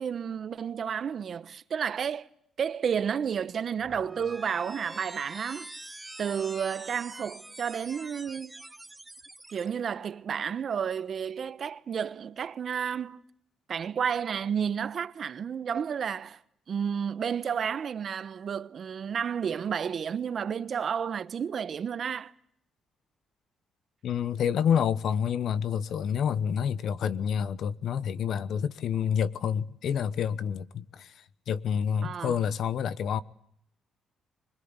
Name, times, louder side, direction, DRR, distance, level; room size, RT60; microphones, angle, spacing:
voice 1, 0.0-2.3 2.6-5.7 6.2-8.6 9.5-13.2 13.7-16.4 16.7-22.3 32.0-32.4, right 7 dB, 55° right, 1.0 m, -31 dB
sound 1, 3.8-9.7, right 2 dB, 15° right, 1.1 m, -45 dB
voice 2, 24.0-31.1 31.5-33.2, left 8 dB, 70° left, 1.0 m, -28 dB
25.5 x 19.5 x 8.9 m
cardioid pair, 90°, 0 cm